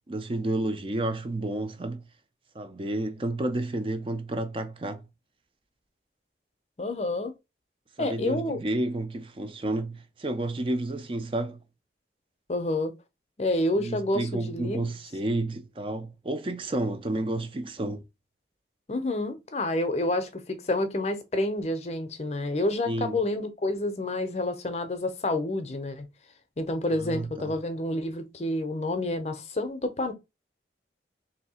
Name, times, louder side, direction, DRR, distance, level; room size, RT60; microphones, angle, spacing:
voice 1, 0.1-2.0 2.5-5.0 8.0-11.6 13.8-18.0 22.9-23.1 27.0-27.5, right 2 dB, 30° right, 0.4 m, -31 dB
voice 2, 6.8-7.3 8.0-8.6 12.5-12.9 13.4-14.9 18.9-26.1 26.6-30.1, left 1 dB, 40° left, 0.6 m, -29 dB
3.1 x 2.7 x 4.2 m
head